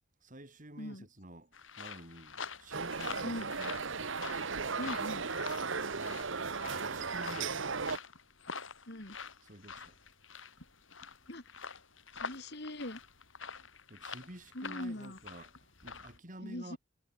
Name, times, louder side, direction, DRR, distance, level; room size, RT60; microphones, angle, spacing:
voice 1, 0.2-3.6 5.9-6.2 6.8-7.8 9.4-10.0 13.9-16.8, right 1 dB, 40° right, 5.1 m, -50 dB
sound 1, 1.5-16.2, left 5 dB, 70° left, 7.0 m, -46 dB
sound 2, 2.7-8.0, right 5 dB, 65° right, 1.3 m, -36 dB
voice 2, 4.8-5.3 8.9-9.2 11.3-11.6 12.1-13.0 14.5-15.2 16.4-16.8, left 1 dB, 55° left, 3.1 m, -41 dB
head